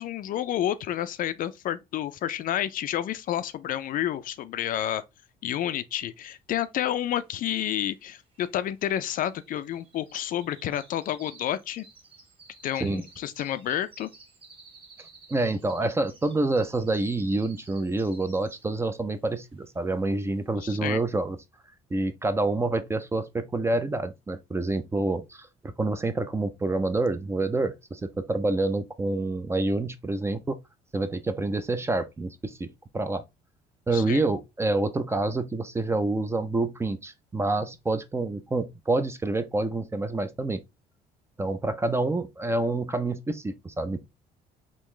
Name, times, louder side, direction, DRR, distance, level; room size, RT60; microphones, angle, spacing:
voice 1, 0.0-5.0 5.4-11.9 12.6-14.1 20.6-21.0 33.9-34.2, left 11 dB, 55° left, 0.4 m, -30 dB
sound 1, 7.2-7.3 7.5-18.9 19.3-19.6 20.1-20.2, right 3 dB, 30° right, 1.5 m, -54 dB
voice 2, 15.3-21.4 21.9-30.6 30.9-32.7 32.9-33.2 33.9-40.6 41.4-44.0, right 2 dB, 15° right, 0.4 m, -27 dB
3.8 x 2.5 x 3.0 m
cardioid pair, 110°, 17 cm